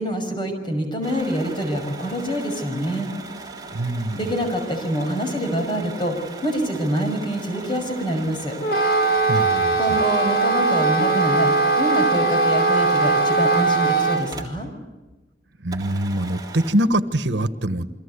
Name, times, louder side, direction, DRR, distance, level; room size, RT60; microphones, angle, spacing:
voice 1, 0.0-3.1 4.1-6.2 6.4-8.6 9.8-14.7, equal, 25° left, 5 dB, 6.2 m, -25 dB
sound 1, 1.0-14.8 15.1-15.2 15.7-16.7, right 3 dB, 20° right, 3.5 m, -39 dB
voice 2, 3.7-4.3 9.3-10.0 15.6-17.9, right 1 dB, 85° right, 11 dB, 1.3 m, -24 dB
Wind instrument woodwind instrument, 8.6-14.3, right 3 dB, 55° left, 2.6 m, -20 dB
29.5 x 24.5 x 8.3 m, 1.1 s
head